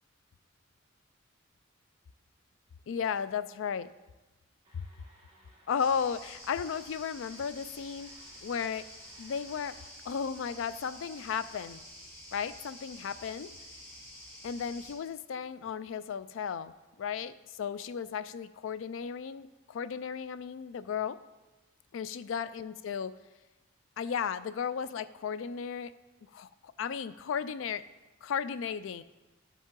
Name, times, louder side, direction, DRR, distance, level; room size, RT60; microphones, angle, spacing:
voice 1, 2.9-3.9 4.7-4.8 5.7-8.1 8.4-8.8 9.2-9.8 10.1-11.8 12.3-13.5 14.4-21.2 21.9-23.1 24.0-25.9 26.3-27.8 28.2-29.0, left 7 dB, 70° left, 14 dB, 0.3 m, -35 dB
sound 1, 4.6-9.9, right 1 dB, 25° right, 1.4 m, -61 dB
sound 2, 5.8-14.9, equal, 10° left, 2.4 m, -49 dB
12.5 x 5.3 x 3.8 m, 1.1 s
head